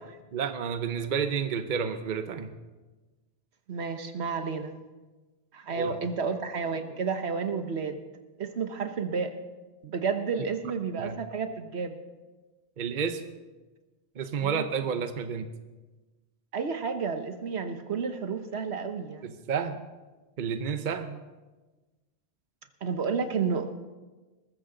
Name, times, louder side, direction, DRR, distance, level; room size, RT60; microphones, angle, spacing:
voice 1, 0.3-2.6 5.8-5.9 11.0-11.2 12.8-13.2 14.1-15.5 19.2-19.8 20.4-21.2, right 6 dB, 50° right, 9 dB, 0.9 m, -30 dB
voice 2, 3.7-4.8 5.5-8.0 8.4-9.3 9.8-12.0 14.4-14.6 16.5-19.4 22.8-23.8, right 5 dB, 75° right, 8 dB, 1.3 m, -31 dB
20.5 x 14.0 x 3.9 m, 1.2 s
omnidirectional pair, 1.1 m